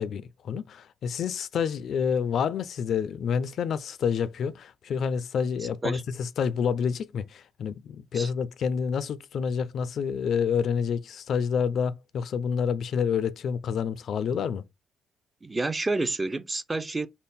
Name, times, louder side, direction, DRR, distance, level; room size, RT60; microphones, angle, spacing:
voice 1, 0.0-14.6, left 7 dB, 65° left, 0.3 m, -28 dB
voice 2, 5.6-6.0 8.1-8.3 15.4-17.1, right 2 dB, 20° right, 0.4 m, -29 dB
3.6 x 2.0 x 4.0 m
cardioid pair, 90°, 0 cm